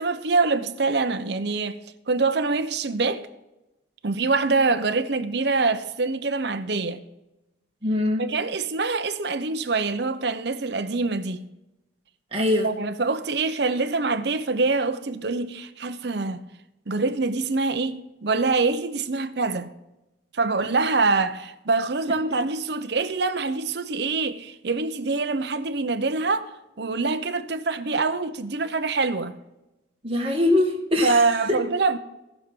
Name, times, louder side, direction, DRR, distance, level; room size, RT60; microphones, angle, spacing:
voice 1, 0.0-1.8 2.1-3.3 4.0-7.0 8.2-11.5 12.6-16.5 16.9-19.7 20.3-26.5 26.8-29.4 31.0-32.0, right 3 dB, 60° right, 0.7 m, -25 dB
voice 2, 7.8-8.3 12.3-12.7 30.0-31.2 31.5-31.6, left 1 dB, 30° right, 2.1 m, -22 dB
18.5 x 6.3 x 3.7 m
head